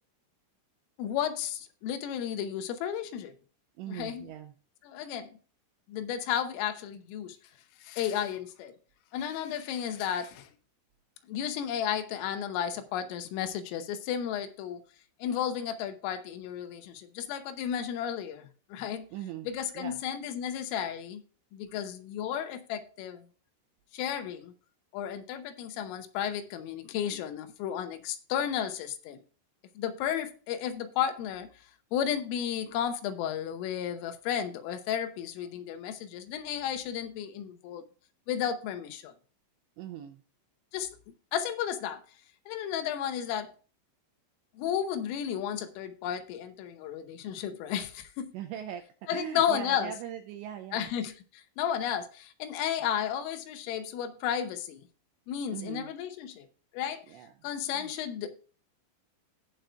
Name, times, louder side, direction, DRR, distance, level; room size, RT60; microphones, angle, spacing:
voice 1, 1.0-3.4 3.9-4.3 4.9-5.3 5.9-7.4 7.8-8.8 9.1-10.5 11.3-14.8 15.2-19.1 19.5-21.2 21.5-23.2 23.9-24.5 24.9-29.2 29.8-31.5 31.9-37.8 38.3-39.1 40.7-40.9 41.3-42.0 42.5-43.5 44.6-48.3 49.1-49.9 50.7-54.8 55.3-56.5 56.7-57.1 57.4-58.4, left 9 dB, 80° left, 3.4 m, -33 dB
voice 2, 3.8-4.6 19.1-19.5 19.7-20.0 39.8-40.2 48.3-50.9 55.5-55.9 57.1-57.3 57.7-57.9, right 10 dB, 85° right, 2.6 m, -40 dB
18.0 x 6.4 x 2.3 m
omnidirectional pair, 5.9 m